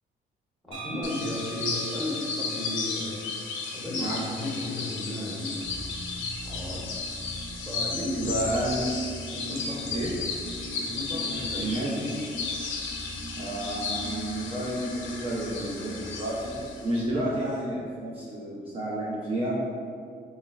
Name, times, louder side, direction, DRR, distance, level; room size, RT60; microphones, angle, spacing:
voice 1, 0.7-3.2 3.7-5.7 6.4-6.9 7.7-8.4 9.3-10.0 10.8-11.8, left 1 dB, ahead, -7 dB, 0.8 m, -34 dB
sound 1, 0.7-4.5, right 2 dB, 90° right, 0.8 m, -44 dB
sound 2, 1.0-17.0, left 4 dB, 75° left, 0.4 m, -34 dB
sound 3, 5.6-17.6, equal, 60° right, 0.8 m, -41 dB
voice 2, 8.2-8.8 9.9-10.1 11.6-12.1 13.3-19.6, right 1 dB, 30° right, -7 dB, 0.4 m, -31 dB
3.5 x 2.1 x 2.3 m, 2.2 s
cardioid pair, 90°, 20 cm